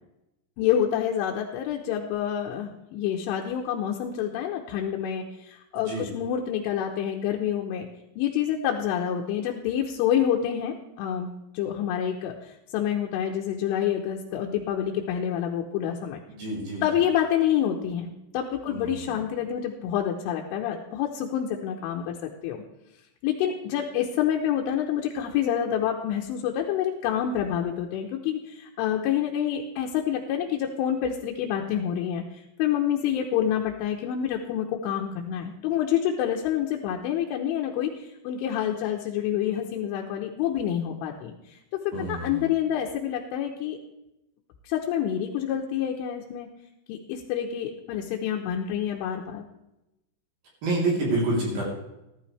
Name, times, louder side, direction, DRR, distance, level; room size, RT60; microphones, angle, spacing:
voice 1, 0.6-7.9 8.2-11.3 11.5-16.2 16.8-22.6 23.2-41.6 42.0-43.8 44.6-46.5 46.9-49.4, left 10 dB, 80° left, 0 dB, 3.3 m, -27 dB
voice 2, 16.4-16.8 18.7-19.1 41.9-42.5 50.6-51.6, right 2 dB, 50° right, -3 dB, 4.5 m, -27 dB
14.5 x 13.0 x 3.3 m, 0.91 s
omnidirectional pair, 5.9 m